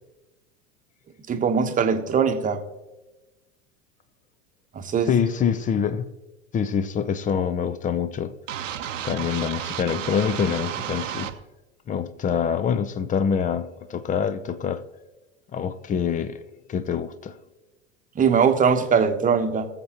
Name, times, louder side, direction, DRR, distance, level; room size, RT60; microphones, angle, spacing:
voice 1, 1.3-2.6 4.7-5.1 18.2-19.7, right 6 dB, 20° right, 1.1 m, -21 dB
voice 2, 5.1-6.0 6.5-8.3 9.0-11.3 11.9-14.8 15.5-16.4 16.7-17.3, left 7 dB, 20° left, 0.6 m, -25 dB
sound 1, 8.5-11.3, right 10 dB, 75° right, 0.9 m, -32 dB
20.0 x 7.4 x 3.0 m
figure-of-eight pair, 85°, 38 cm